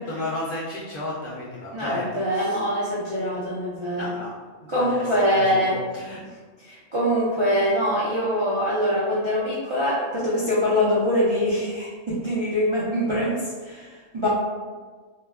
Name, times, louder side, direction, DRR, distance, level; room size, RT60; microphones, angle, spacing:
voice 1, 0.1-2.6 4.0-4.3 4.6-6.2, left 2 dB, 60° left, -6 dB, 0.5 m, -33 dB
voice 2, 1.7-4.1 4.7-5.8 6.6-14.3, equal, 50° right, -9 dB, 0.3 m, -24 dB
2.2 x 2.2 x 3.4 m, 1.4 s
omnidirectional pair, 1.3 m